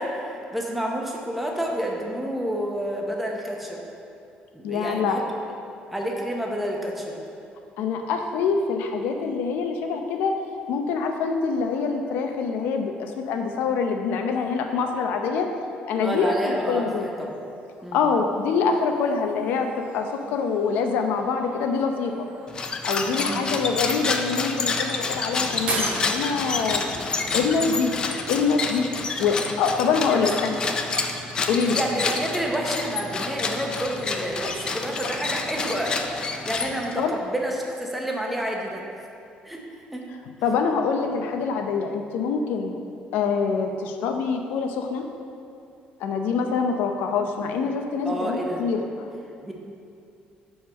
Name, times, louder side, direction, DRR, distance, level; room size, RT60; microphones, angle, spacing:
voice 1, 0.0-3.8 4.5-5.2 5.9-7.2 16.0-17.3 17.8-18.0 23.2-23.5 30.1-30.3 31.6-38.8 39.4-39.6 39.9-40.1 48.0-48.6 49.4-49.5, equal, 5° right, -1 dB, 0.8 m, -29 dB
voice 2, 4.6-5.2 7.8-10.3 10.7-15.5 15.9-17.1 17.9-22.3 22.8-26.8 27.3-27.9 28.3-28.9 29.2-30.6 31.5-31.8 37.0-37.1 40.4-42.8 43.1-45.0 46.0-48.8, left 5 dB, 85° left, 4 dB, 0.6 m, -25 dB
sound 1, 17.2-29.2, right 5 dB, 50° right, 0.5 m, -41 dB
sound 2, 22.5-37.1, left 4 dB, 25° left, 0.4 m, -28 dB
5.5 x 4.6 x 6.3 m, 2.5 s
cardioid pair, 160°, 3 cm